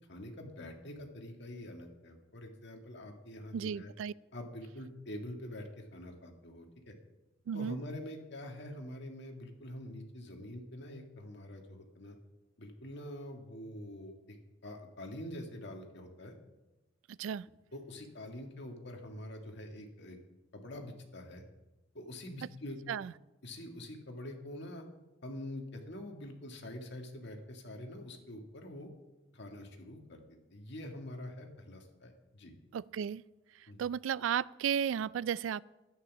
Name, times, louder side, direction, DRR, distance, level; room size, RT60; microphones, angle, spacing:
voice 1, 0.1-3.9 4.3-7.0 7.5-12.2 12.6-14.4 14.6-16.3 17.7-20.2 20.5-21.4 21.9-22.8 23.4-24.9 25.2-28.9 29.3-30.2 30.5-32.5 33.7-33.8, left 1 dB, 65° left, 3 dB, 1.9 m, -45 dB
voice 2, 3.5-4.1 7.5-7.8 17.1-17.5 22.9-23.1 32.7-33.2 33.8-35.6, right 8 dB, 75° right, 21 dB, 0.3 m, -34 dB
11.5 x 9.6 x 6.1 m, 1.1 s
head